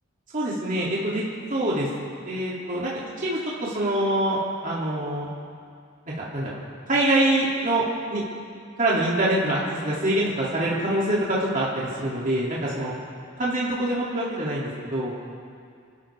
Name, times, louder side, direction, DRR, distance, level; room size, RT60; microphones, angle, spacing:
voice 1, 0.3-1.2 1.5-1.9 2.3-2.9 3.2-5.3 6.3-6.6 6.9-7.8 8.1-8.2 8.8-12.9 13.4-15.1, right 1 dB, 40° right, -6 dB, 2.5 m, -25 dB
27.0 x 12.5 x 3.4 m, 2.2 s
head